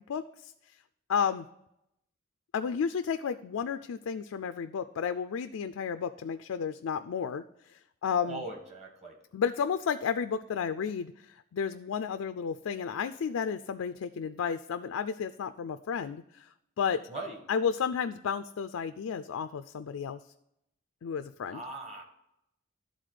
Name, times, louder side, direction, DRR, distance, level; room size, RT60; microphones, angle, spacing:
voice 1, 0.1-0.5 1.1-1.5 2.5-8.4 9.3-16.5 16.8-17.0 17.5-20.2 21.0-21.6, left 6 dB, 85° left, 9 dB, 0.4 m, -32 dB
voice 2, 8.2-9.1 17.1-17.4 21.5-22.0, right 2 dB, 30° right, 2 dB, 1.6 m, -40 dB
11.5 x 4.0 x 5.0 m, 0.79 s
head